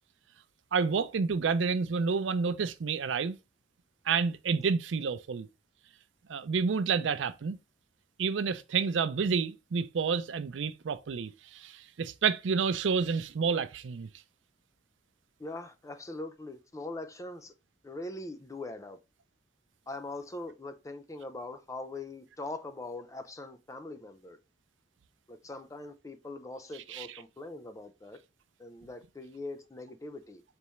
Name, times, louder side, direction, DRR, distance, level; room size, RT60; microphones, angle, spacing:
voice 1, 0.7-3.4 4.1-5.5 6.3-7.6 8.2-14.1 26.9-27.2, right 5 dB, 80° right, 0.4 m, -29 dB
voice 2, 15.4-17.5 17.8-19.0 19.9-24.4 25.3-28.2 28.6-30.4, left 2 dB, 15° left, 0.5 m, -42 dB
4.0 x 3.5 x 3.0 m
head